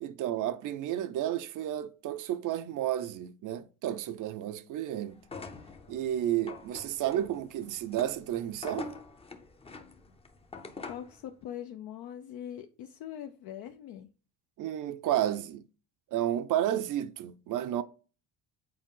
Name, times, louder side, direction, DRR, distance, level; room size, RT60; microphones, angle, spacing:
voice 1, 0.0-5.2 5.9-8.9 14.6-15.6 16.1-17.8, right 12 dB, 50° right, 0.6 m, -32 dB
sound 1, 5.2-11.2, left 3 dB, 15° left, 0.7 m, -45 dB
voice 2, 10.9-14.1, left 10 dB, 60° left, 0.7 m, -42 dB
7.7 x 4.5 x 3.8 m
cardioid pair, 145°, 40 cm